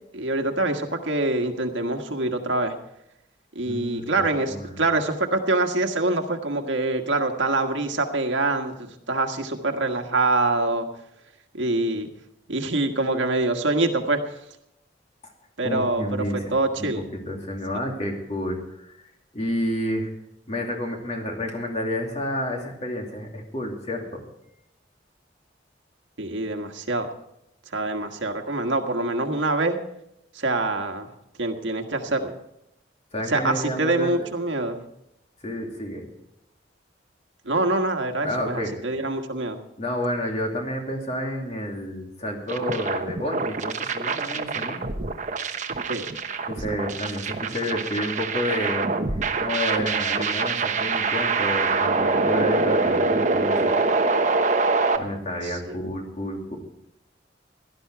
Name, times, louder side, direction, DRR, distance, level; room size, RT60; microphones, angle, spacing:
voice 1, 0.1-2.7 3.5-10.9 11.5-12.1 12.5-14.2 15.6-16.2 16.5-17.0 26.2-27.1 27.7-29.8 30.3-31.1 31.4-32.3 33.3-34.9 37.4-39.6 45.9-46.0 55.4-55.8, right 2 dB, 90° right, 4 dB, 1.6 m, -25 dB
voice 2, 3.6-4.7 15.6-18.9 19.3-20.1 20.5-24.2 33.1-34.1 35.4-36.0 38.2-39.0 39.8-44.8 46.5-48.9 49.4-53.7 54.0-54.4 55.0-56.6, left 1 dB, 35° left, 1 dB, 2.8 m, -30 dB
sound 1, 42.5-55.0, right 3 dB, 40° right, 1.0 m, -24 dB
17.0 x 12.0 x 4.7 m, 0.79 s
head